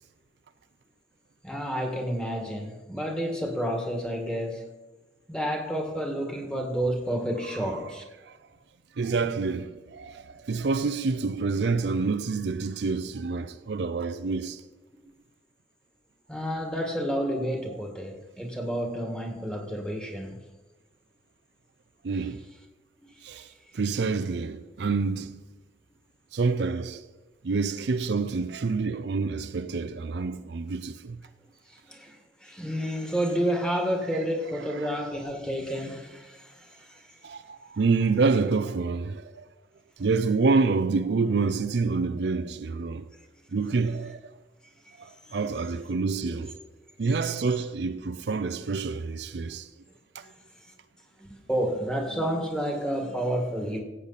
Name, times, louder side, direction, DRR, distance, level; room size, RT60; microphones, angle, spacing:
voice 1, 1.4-4.7 5.3-8.1 15.0-15.1 16.3-20.4 23.0-23.1 31.7-37.2 45.2-45.4 50.2-50.7 51.2-53.8, equal, 5° left, 1.7 m, -30 dB
voice 2, 9.0-14.6 22.0-22.4 23.2-25.4 26.3-27.0 27.4-31.2 37.2-39.5 40.0-43.1 43.5-44.4 45.0-46.6 47.0-49.7 50.1-50.2, right 4 dB, 70° right, 0.5 m, -27 dB
15.5 x 8.7 x 4.1 m
head